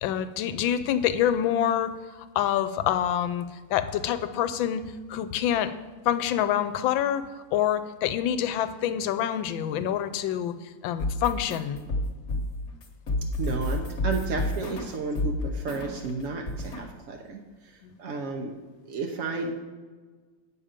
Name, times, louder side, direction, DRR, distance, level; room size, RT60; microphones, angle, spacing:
voice 1, 0.0-3.4 3.7-5.7 6.0-10.5 10.8-11.8 17.8-18.0, left 10 dB, 80° left, 12 dB, 1.3 m, -26 dB
sound 1, 11.0-16.1 16.5-16.9, left 1 dB, 40° left, 1.3 m, -30 dB
voice 2, 13.4-18.5 18.8-19.5, right 4 dB, 65° right, 2 dB, 0.8 m, -32 dB
8.7 x 6.8 x 5.0 m, 1.4 s
omnidirectional pair, 2.2 m